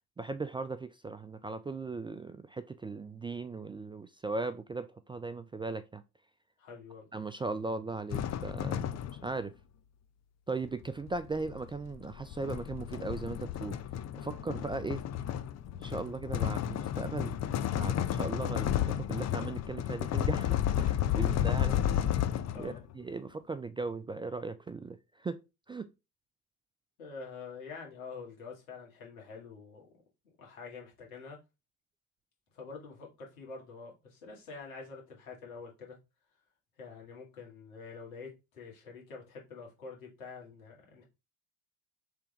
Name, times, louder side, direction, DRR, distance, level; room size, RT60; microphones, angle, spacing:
voice 1, 0.2-6.0 7.1-8.9 9.2-9.5 10.5-13.8 14.1-15.0 15.7-17.4 17.8-21.8 22.6-25.4 25.7-25.9, right 3 dB, 15° right, 0.3 m, -38 dB
voice 2, 6.6-7.1 21.1-21.5 22.5-22.8 27.0-30.0 30.4-31.4 32.5-36.0 36.8-41.0, left 4 dB, 85° left, 1.8 m, -47 dB
sound 1, 8.1-9.4 10.6-22.9, left 10 dB, 40° left, 0.6 m, -32 dB
3.4 x 3.4 x 3.8 m
hypercardioid pair, 60°, 41 cm